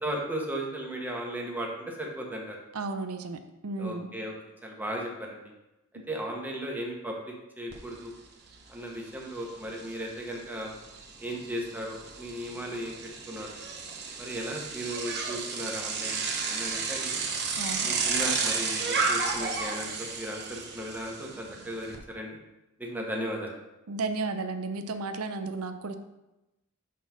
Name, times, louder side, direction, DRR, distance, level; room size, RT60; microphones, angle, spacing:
voice 1, 0.0-2.6 3.8-4.3 4.6-5.4 6.1-8.1 8.7-10.7 11.2-13.0 13.3-13.5 14.2-17.2 17.8-22.4 22.8-23.5, right 1 dB, 10° right, -1 dB, 1.2 m, -36 dB
voice 2, 2.7-4.1 17.6-17.9 23.9-25.9, right 3 dB, 70° right, 8 dB, 0.6 m, -33 dB
Bicycle, 7.7-7.8 8.2-22.0, right 4 dB, 50° right, 1.0 m, -33 dB
5.5 x 4.4 x 6.0 m, 0.97 s
head